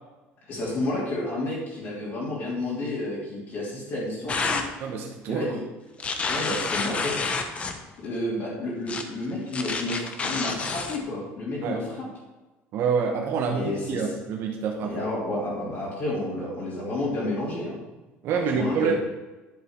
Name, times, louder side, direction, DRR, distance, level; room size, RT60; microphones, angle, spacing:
voice 1, 0.5-4.6 5.3-5.6 6.3-7.3 8.0-12.1 13.5-14.1 14.8-17.8 18.3-18.9, left 1 dB, 45° left, -6 dB, 3.2 m, -31 dB
sound 1, 4.3-4.7 6.0-7.8 8.9-9.0 9.5-11.0, left 4 dB, 25° left, 1.0 m, -28 dB
voice 2, 4.8-5.5 6.1-6.2 11.6-11.8 12.7-15.1 18.2-18.9, right 5 dB, 55° right, 0 dB, 1.3 m, -27 dB
11.0 x 7.0 x 4.7 m, 1.1 s
cardioid pair, 150°, 5 cm